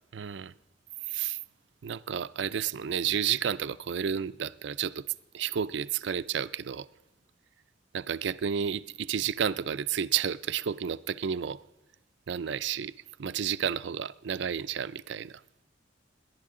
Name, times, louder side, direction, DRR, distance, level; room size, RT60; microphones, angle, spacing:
voice 1, 0.1-0.5 1.1-1.4 1.8-6.9 7.9-11.6 12.3-12.9 13.2-15.4, right 8 dB, 70° right, 0.4 m, -31 dB
28.5 x 11.0 x 3.7 m
head